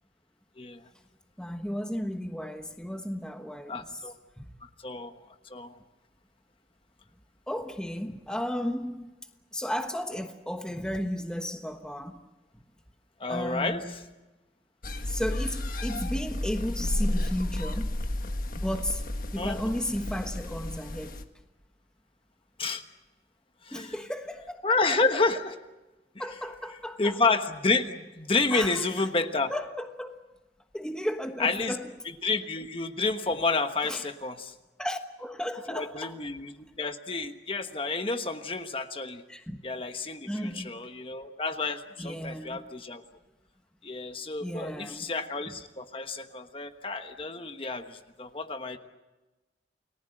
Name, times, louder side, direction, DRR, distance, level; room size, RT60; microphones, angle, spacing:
voice 1, 1.4-4.0 4.4-4.5 7.5-9.1 9.5-12.2 13.3-13.9 15.1-18.0 18.5-19.0 19.3-21.2 23.7-24.8 26.2-27.2 28.5-29.1 29.5-30.2 30.7-31.9 33.8-34.1 34.8-36.2 39.3-39.6 40.3-40.7 42.0-42.6 44.4-45.1 45.5-45.6, equal, 5° left, 1.2 m, -34 dB
voice 2, 3.7-4.1 4.6-5.1 5.5-5.7 13.2-13.8 19.4-19.6 22.6-22.8 23.6-23.9 24.6-25.5 27.0-29.5 31.4-31.8 32.2-34.5 35.7-36.5 36.8-39.2 39.6-43.0 43.8-48.8, left 3 dB, 30° left, 1.2 m, -30 dB
sound 1, 14.8-21.2, left 1 dB, 50° left, 1.5 m, -32 dB
29.5 x 19.0 x 7.8 m
head